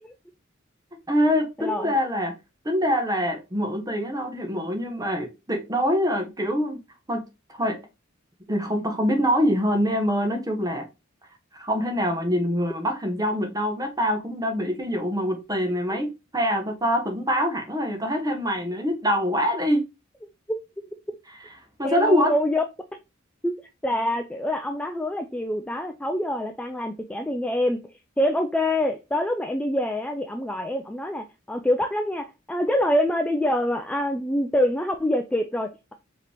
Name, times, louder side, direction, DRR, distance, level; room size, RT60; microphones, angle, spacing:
voice 1, 1.1-2.3 2.6-6.8 7.1-7.8 8.5-10.8 11.5-19.9 21.8-22.4, equal, 20° right, 1.0 m, -24 dB
voice 2, 1.6-2.0 20.5-20.9 21.8-22.6 23.4-23.5 23.8-27.9 28.2-35.9, left 1 dB, 5° left, 0.3 m, -25 dB
4.8 x 3.0 x 3.4 m
head